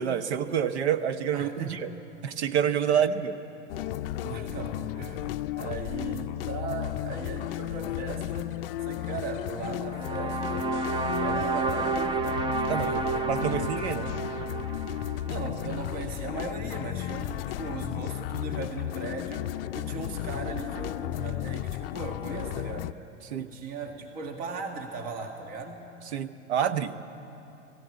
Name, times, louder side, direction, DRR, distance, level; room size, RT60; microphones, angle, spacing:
voice 1, 0.0-1.9 2.2-3.3 12.7-12.9 13.3-14.1 23.2-23.5 26.1-27.0, right 8 dB, 60° right, 13 dB, 1.0 m, -27 dB
voice 2, 1.3-1.8 2.9-3.1 4.2-10.8 11.2-13.1 13.4-14.2 15.2-23.0 23.4-25.9, right 4 dB, 45° right, 4 dB, 2.0 m, -38 dB
sound 1, 3.7-22.9, left 14 dB, 50° left, 0.5 m, -34 dB
sound 2, 9.9-16.1, right 4 dB, 15° right, 0.6 m, -31 dB
20.5 x 16.0 x 9.3 m, 2.9 s
figure-of-eight pair, 85°, 37 cm